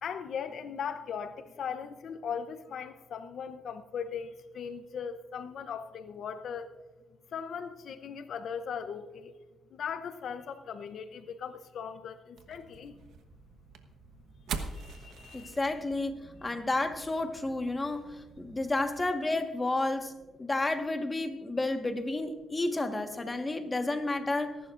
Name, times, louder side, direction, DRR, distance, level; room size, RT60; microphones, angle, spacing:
voice 1, 0.0-6.7 7.3-9.3 9.7-13.0 14.8-15.5 20.0-20.1, left 7 dB, 65° left, 11 dB, 0.7 m, -39 dB
sound 1, 12.4-19.1, right 5 dB, 75° right, 1.1 m, -45 dB
voice 2, 15.3-24.6, left 2 dB, 20° left, 6 dB, 1.4 m, -31 dB
23.0 x 11.5 x 2.5 m, 1.3 s
cardioid pair, 90°, 0 cm